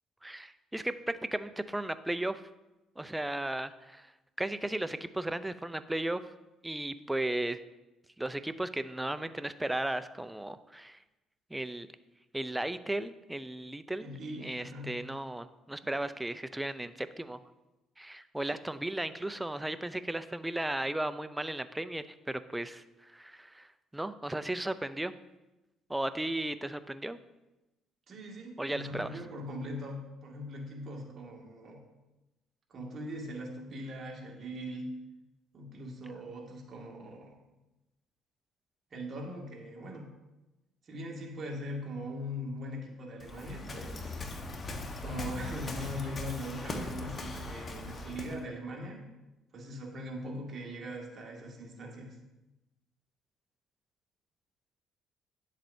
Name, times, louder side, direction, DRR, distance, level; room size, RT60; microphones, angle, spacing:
voice 1, 0.2-0.9 1.3-2.4 3.0-4.1 4.4-6.2 6.6-7.6 8.2-11.0 11.5-11.9 12.3-14.0 14.4-17.4 18.0-23.7 23.9-25.1 25.9-27.2 28.6-29.1, right 1 dB, 10° right, 12 dB, 0.4 m, -35 dB
voice 2, 14.0-15.0 15.8-15.9 28.1-31.8 32.7-34.9 35.5-37.4 38.9-40.1 40.9-44.2 45.0-49.0 49.5-52.2, equal, 45° right, 0 dB, 1.9 m, -41 dB
Waves surf, 43.2-48.4, left 2 dB, 35° left, 1.1 m, -40 dB
10.0 x 7.4 x 2.7 m, 1.0 s
cardioid pair, 85°, 0 cm